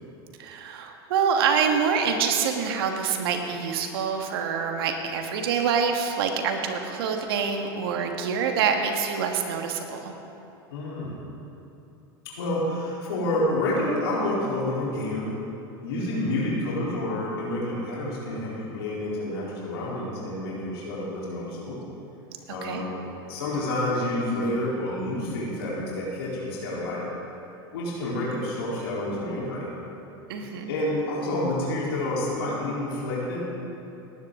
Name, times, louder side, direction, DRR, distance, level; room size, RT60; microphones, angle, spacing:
voice 1, 0.4-10.1 22.6-22.8 30.3-30.7, right 6 dB, 75° right, 4 dB, 1.6 m, -26 dB
voice 2, 10.7-11.2 12.3-15.3 15.8-21.8 22.5-27.0 27.7-29.7 30.7-33.4, left 1 dB, 80° left, -6 dB, 3.6 m, -29 dB
18.5 x 10.5 x 3.7 m, 2.8 s
hypercardioid pair, 100°, 13 cm